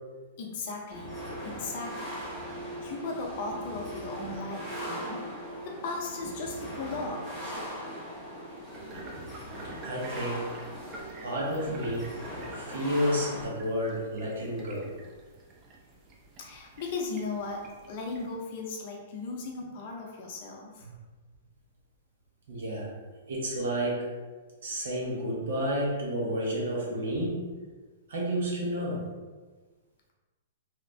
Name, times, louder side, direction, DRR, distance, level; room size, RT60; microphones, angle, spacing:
voice 1, 0.4-1.2 1.4-2.2 2.8-5.2 5.6-7.4 16.4-20.9, left 3 dB, 45° left, 0 dB, 0.6 m, -37 dB
sound 1, 0.9-13.4, equal, 5° left, 1.3 m, -39 dB
sound 2, 8.7-18.3, right 2 dB, 25° right, 0.5 m, -49 dB
voice 2, 9.8-10.5 11.2-12.1 12.5-14.9 22.5-22.9 23.3-24.1 24.6-27.4 28.1-29.0, equal, 75° right, -4 dB, 1.2 m, -30 dB
2.8 x 2.5 x 3.3 m, 1.3 s
hypercardioid pair, 150°, 0 cm